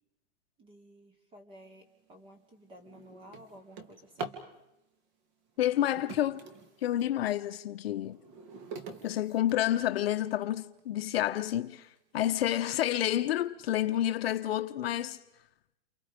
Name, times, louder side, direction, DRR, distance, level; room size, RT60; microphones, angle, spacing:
voice 1, 0.6-4.3, equal, 15° right, 2.8 m, -53 dB
Drawer open or close, 1.8-2.0 2.5-4.5 5.6-7.2 7.7-10.1 10.8-10.9 11.4-11.5 11.8-12.2, right 4 dB, 40° right, 2.7 m, -45 dB
voice 2, 5.6-6.4 6.8-8.2 9.0-15.2, left 12 dB, 55° left, 1.0 m, -29 dB
29.5 x 29.0 x 5.1 m
supercardioid pair, 170°, 35 cm